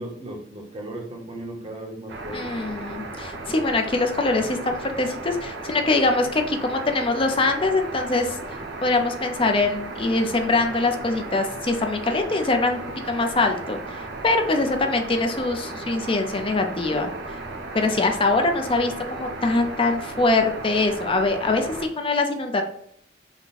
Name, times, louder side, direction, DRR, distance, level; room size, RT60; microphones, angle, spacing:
voice 1, 0.0-2.5, right 1 dB, 30° right, 2 dB, 0.9 m, -36 dB
sound 1, 2.1-21.9, right 2 dB, 65° right, 0.9 m, -35 dB
voice 2, 2.3-8.4 8.8-12.8 13.1-13.8 14.2-17.1 17.7-22.6, left 3 dB, 30° left, 5 dB, 0.5 m, -23 dB
5.7 x 2.2 x 4.1 m, 0.70 s
head